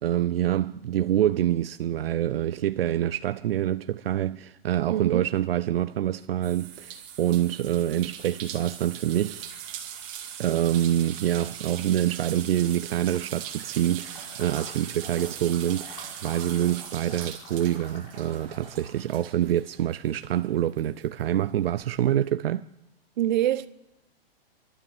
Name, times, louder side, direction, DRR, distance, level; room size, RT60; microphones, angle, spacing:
voice 1, 0.0-9.5 10.4-22.6, right 12 dB, 70° right, 0.6 m, -26 dB
voice 2, 4.9-5.3 23.2-23.7, right 12 dB, 50° right, 0.9 m, -25 dB
sound 1, 6.4-20.5 20.8-22.0, right 9 dB, 25° right, 2.3 m, -40 dB
sound 2, 14.0-19.2, left 3 dB, 50° left, 7.0 m, -47 dB
29.0 x 12.5 x 7.3 m
hypercardioid pair, 160°, 30 cm